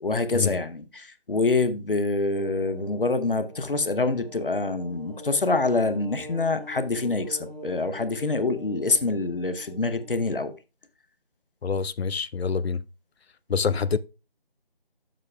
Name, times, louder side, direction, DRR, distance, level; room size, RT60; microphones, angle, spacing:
voice 1, 0.0-10.5, left 3 dB, 60° left, 0.9 m, -26 dB
sound 1, 2.3-10.3, left 1 dB, 5° left, 2.2 m, -44 dB
voice 2, 11.6-12.8 13.5-14.0, left 5 dB, 90° left, 0.5 m, -26 dB
9.5 x 7.6 x 2.3 m
figure-of-eight pair, 170°, 30 cm